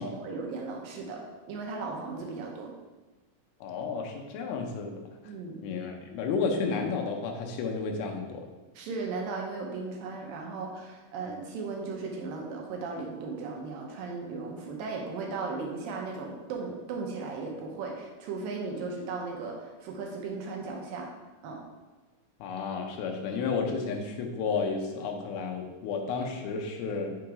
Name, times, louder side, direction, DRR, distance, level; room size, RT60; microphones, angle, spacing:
voice 1, 0.0-2.7 5.3-5.6 8.8-21.1 21.4-21.6, right 4 dB, 75° right, 0 dB, 2.4 m, -36 dB
voice 2, 3.6-5.0 5.2-5.3 5.6-8.5 22.4-27.1, left 5 dB, 85° left, 3 dB, 2.6 m, -32 dB
6.2 x 3.9 x 4.7 m, 1.2 s
omnidirectional pair, 4.3 m